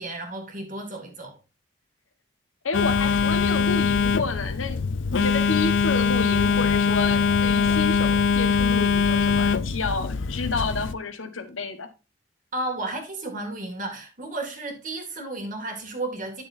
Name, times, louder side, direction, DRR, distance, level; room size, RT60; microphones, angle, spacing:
voice 1, 0.0-1.4 12.5-16.4, right 2 dB, 40° right, 2.3 m, -33 dB
voice 2, 2.6-4.9 5.1-11.9, left 3 dB, 90° left, 1.3 m, -30 dB
Telephone, 2.7-10.9, left 5 dB, 70° left, 0.5 m, -22 dB
10.5 x 7.0 x 2.7 m
head